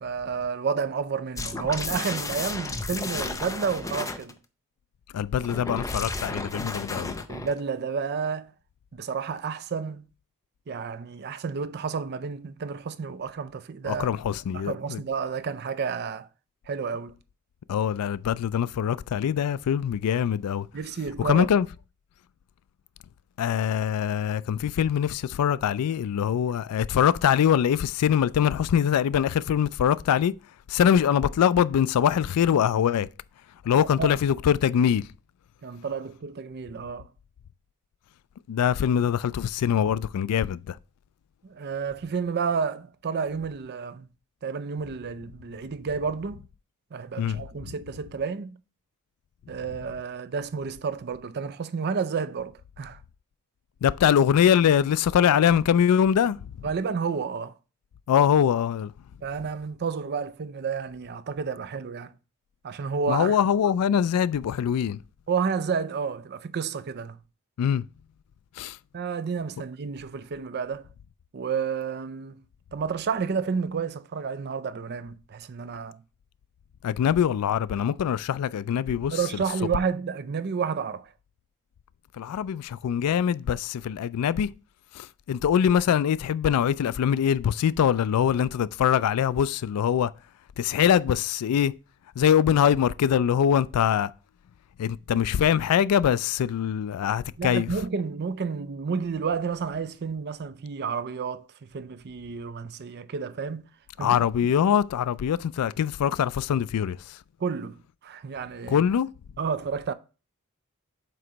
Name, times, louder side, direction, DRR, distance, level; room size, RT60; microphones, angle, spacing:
voice 1, 0.0-4.4 7.3-8.5 8.9-10.1 10.7-14.1 14.5-16.3 16.7-17.2 20.7-21.5 33.8-34.2 35.6-37.1 41.4-44.1 44.4-46.4 46.9-48.6 49.5-53.0 56.6-57.6 59.2-62.2 62.6-63.4 65.3-67.2 68.9-70.9 71.3-72.4 72.7-76.0 79.1-81.1 97.4-103.7 104.0-104.5 107.4-108.8 109.4-109.9, right 5 dB, 45° right, 0.5 m, -31 dB
sound 1, 1.4-4.3 5.4-7.6, left 3 dB, 15° left, 0.5 m, -33 dB
voice 2, 5.1-7.2 13.9-15.0 17.7-20.7 21.2-21.7 23.4-30.3 30.7-33.1 33.6-35.0 38.5-40.8 47.2-47.4 53.8-56.7 58.1-58.9 63.1-65.0 67.6-67.8 68.6-68.8 76.8-79.2 82.2-84.5 84.9-90.1 90.6-91.7 92.2-94.1 94.8-97.7 104.0-107.2 108.7-109.1, left 8 dB, 85° left, 0.3 m, -23 dB
7.7 x 2.9 x 5.0 m
head